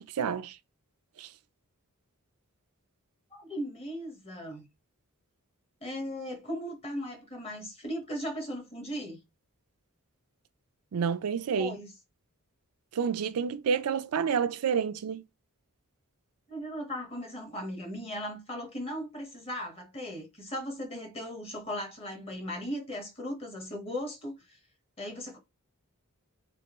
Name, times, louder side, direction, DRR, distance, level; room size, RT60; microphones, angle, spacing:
voice 1, 0.1-0.6 1.2-1.3 10.9-11.8 12.9-15.2, right 6 dB, 90° right, 0.4 m, -29 dB
voice 2, 3.3-4.7 5.8-9.2 11.4-11.9 16.5-24.6 25.0-25.4, equal, 25° left, 1.0 m, -37 dB
3.5 x 2.3 x 3.0 m
head